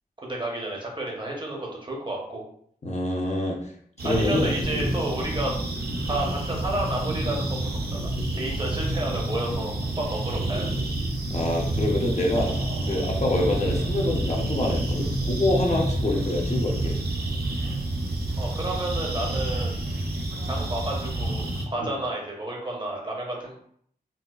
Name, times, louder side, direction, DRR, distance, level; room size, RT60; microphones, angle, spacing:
voice 1, 0.2-2.4 4.0-5.5 6.1-10.7 18.4-19.8 20.4-23.5, right 1 dB, 30° right, -2 dB, 0.8 m, -31 dB
voice 2, 2.8-3.6 4.0-4.9 11.3-12.5 12.9-17.0 21.8-21.9, left 1 dB, 45° left, -1 dB, 0.7 m, -26 dB
sound 1, 4.0-21.6, right 1 dB, 80° right, 0.6 m, -28 dB
4.0 x 2.2 x 2.4 m, 0.64 s
wide cardioid pair, 80°, 16 cm